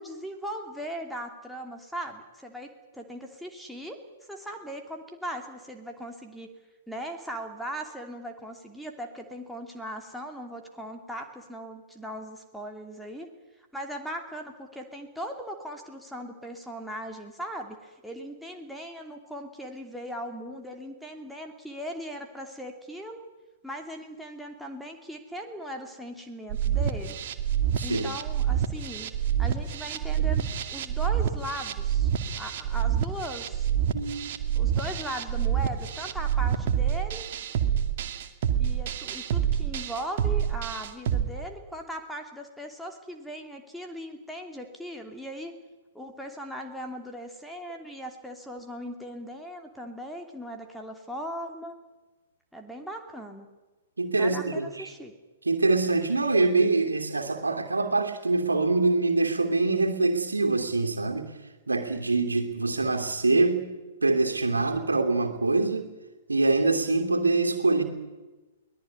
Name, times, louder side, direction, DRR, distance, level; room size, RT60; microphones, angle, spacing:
voice 1, 0.0-4.0 4.3-6.5 6.9-13.3 13.7-23.2 23.6-27.2 27.8-29.1 29.4-32.1 32.4-33.7 34.5-37.3 38.6-45.5 45.9-51.8 52.5-53.5 54.2-55.1, equal, ahead, 2.9 m, -39 dB
sound 1, 26.5-41.2, right 9 dB, 45° right, 2.2 m, -27 dB
voice 2, 27.8-28.1 33.9-34.4 54.0-54.9 55.5-61.3 61.7-63.6 64.0-65.9 66.3-67.8, right 3 dB, 80° right, 2.9 m, -24 dB
23.0 x 18.5 x 9.7 m
figure-of-eight pair, 110°, 0 cm